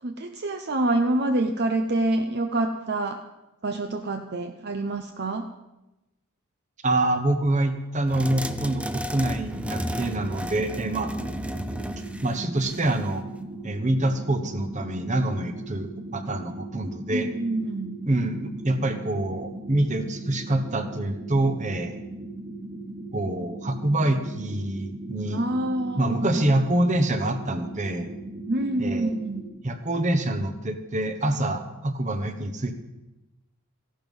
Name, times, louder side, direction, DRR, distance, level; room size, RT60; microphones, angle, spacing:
voice 1, 0.0-3.2 3.6-5.4 17.1-18.0 25.3-26.5 28.5-29.4, right 2 dB, 50° right, 6 dB, 0.8 m, -26 dB
voice 2, 6.8-11.1 12.2-13.2 13.6-17.3 18.0-22.0 23.1-25.4 26.0-28.1 28.8-29.1 29.6-32.7, right 1 dB, 35° right, 9 dB, 1.1 m, -26 dB
sound 1, 8.1-13.1, equal, 5° right, 0.5 m, -33 dB
sound 2, 9.5-29.5, right 2 dB, 65° right, 5.2 m, -38 dB
15.0 x 11.5 x 5.4 m, 0.99 s
head